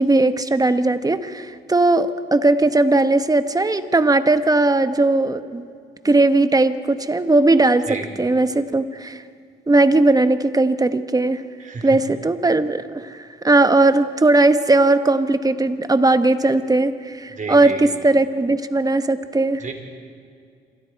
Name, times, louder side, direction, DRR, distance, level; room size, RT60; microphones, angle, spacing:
voice 1, 0.0-5.6 6.0-9.2 9.7-11.4 11.8-13.2 13.4-19.6, right 2 dB, 20° right, 10 dB, 1.2 m, -18 dB
voice 2, 17.3-17.8 19.6-19.7, right 4 dB, 40° right, 4 dB, 4.1 m, -30 dB
27.5 x 23.5 x 4.7 m, 2.3 s
cardioid pair, 90°, 20 cm